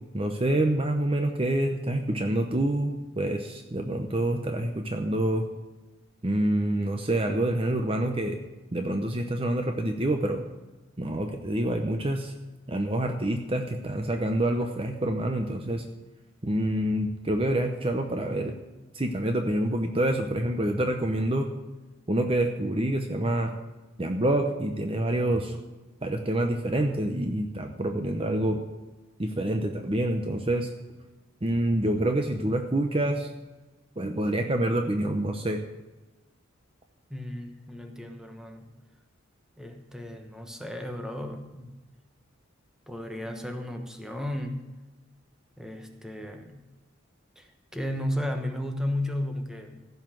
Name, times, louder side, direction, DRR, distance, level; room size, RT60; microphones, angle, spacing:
voice 1, 0.1-5.4 6.2-8.4 8.7-10.4 11.0-12.3 12.7-15.8 16.4-18.5 18.9-21.5 22.1-23.5 24.0-25.6 26.0-28.6 29.2-30.7 31.4-33.3 34.0-35.6, right 1 dB, 25° right, 5 dB, 0.8 m, -27 dB
voice 2, 37.1-38.7 39.6-41.8 42.9-44.7 45.6-46.7 47.4-49.8, left 1 dB, 5° right, 4 dB, 1.1 m, -34 dB
15.5 x 5.7 x 7.5 m, 1.1 s
head